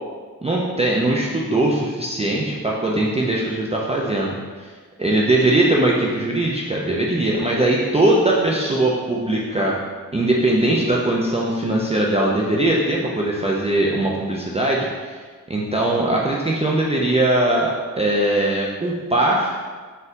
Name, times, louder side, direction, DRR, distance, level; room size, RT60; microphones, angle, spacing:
voice 1, 0.4-4.7 5.0-9.8 10.1-15.1 15.5-19.5, right 1 dB, 20° right, -4 dB, 0.4 m, -20 dB
4.1 x 2.6 x 3.9 m, 1.5 s
wide cardioid pair, 135°, 32 cm